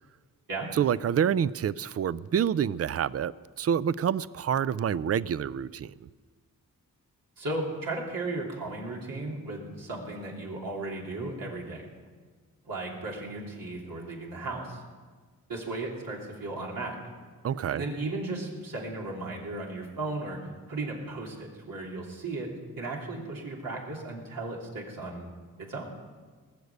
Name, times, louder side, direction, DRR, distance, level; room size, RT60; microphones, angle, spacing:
voice 1, 0.7-5.9 17.4-17.8, right 8 dB, 45° right, 18 dB, 0.4 m, -27 dB
voice 2, 7.4-11.9 12.7-14.8 15.5-16.9 17.7-20.4 20.7-25.3 25.7-25.8, right 2 dB, 85° right, -2 dB, 3.1 m, -35 dB
19.5 x 6.7 x 8.2 m, 1.5 s
wide cardioid pair, 85°, 34 cm